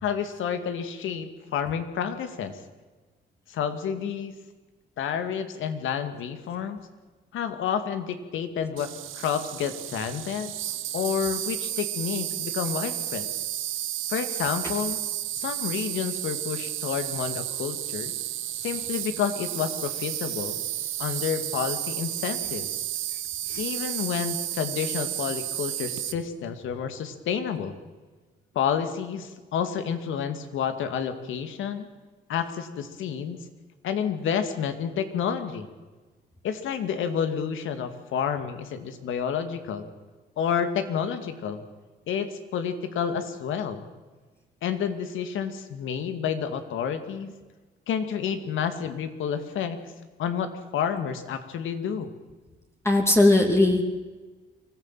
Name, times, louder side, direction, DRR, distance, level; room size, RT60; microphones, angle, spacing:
voice 1, 0.0-2.6 3.5-4.3 5.0-6.8 7.3-10.5 10.9-13.3 14.1-15.0 15.3-18.1 18.6-20.6 21.0-22.7 23.6-27.7 28.5-31.9 32.3-33.4 33.8-35.7 36.4-39.9 40.4-41.6 42.1-43.9 44.6-47.3 47.9-49.8 50.2-52.1, left 7 dB, 80° left, 9 dB, 2.3 m, -30 dB
Insect, 8.8-26.1, right 13 dB, 85° right, 1.3 m, -32 dB
voice 2, 52.8-53.8, left 2 dB, 15° left, 2 dB, 2.7 m, -19 dB
24.0 x 15.5 x 9.1 m, 1.3 s
cardioid pair, 90°, 20 cm